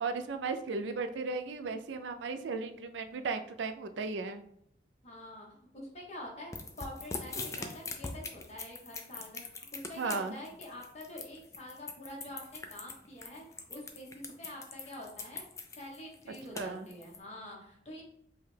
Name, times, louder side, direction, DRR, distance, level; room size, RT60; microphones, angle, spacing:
voice 1, 0.0-4.4 10.0-10.4 16.5-16.9, right 4 dB, 80° right, 8 dB, 0.4 m, -35 dB
voice 2, 5.0-5.5 5.7-15.4 15.8-18.0, left 1 dB, 35° left, -2 dB, 1.1 m, -46 dB
sound 1, 6.5-17.2, left 3 dB, 15° left, 0.3 m, -42 dB
5.4 x 2.2 x 3.3 m, 0.70 s
head